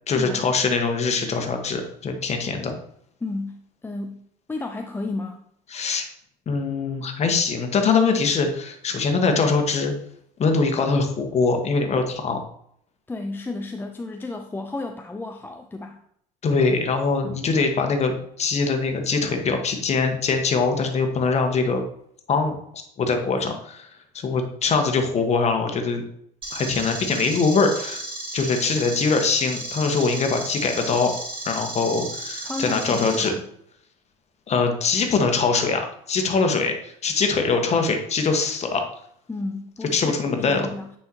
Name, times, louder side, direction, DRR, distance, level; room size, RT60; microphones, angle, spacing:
voice 1, 0.1-2.7 5.7-6.0 6.5-9.9 10.4-12.4 16.4-21.8 22.3-23.9 24.1-26.0 26.5-28.0 28.3-31.1 31.4-33.3 34.5-38.8 39.9-40.7, left 4 dB, 35° left, 5 dB, 1.4 m, -23 dB
voice 2, 3.2-3.6 3.8-4.2 4.5-5.4 13.1-16.0 32.4-33.5 39.3-40.9, left 2 dB, 10° left, 4 dB, 0.5 m, -32 dB
sound 1, 26.4-33.3, right 2 dB, 25° right, 2.5 m, -34 dB
9.3 x 4.7 x 2.9 m, 0.69 s
hypercardioid pair, 70°, 20 cm